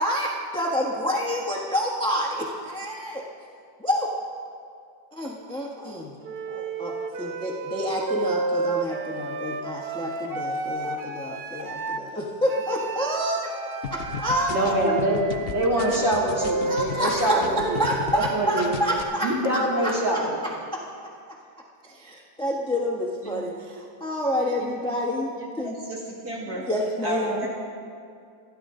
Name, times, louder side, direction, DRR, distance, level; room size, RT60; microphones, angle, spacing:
voice 1, 0.0-3.2 3.8-4.1 5.1-6.1 6.5-13.5 13.9-14.7 16.7-17.4 17.8-19.3 19.8-20.2 20.7-20.8 21.8-25.8 26.5-27.5, equal, 5° left, -2 dB, 1.1 m, -28 dB
Wind instrument woodwind instrument, 6.2-12.1 12.5-18.1, right 4 dB, 90° right, 0.5 m, -31 dB
sound 1, 13.8-18.3 18.6-19.0, left 7 dB, 75° left, 0.5 m, -35 dB
voice 2, 14.5-15.2 15.5-17.8 18.1-18.8 19.2-20.3, right 1 dB, 35° right, -5 dB, 3.3 m, -24 dB
voice 3, 25.4-26.6 27.0-27.5, right 1 dB, 55° right, -3 dB, 2.6 m, -33 dB
25.0 x 11.0 x 3.8 m, 2.3 s
omnidirectional pair, 2.1 m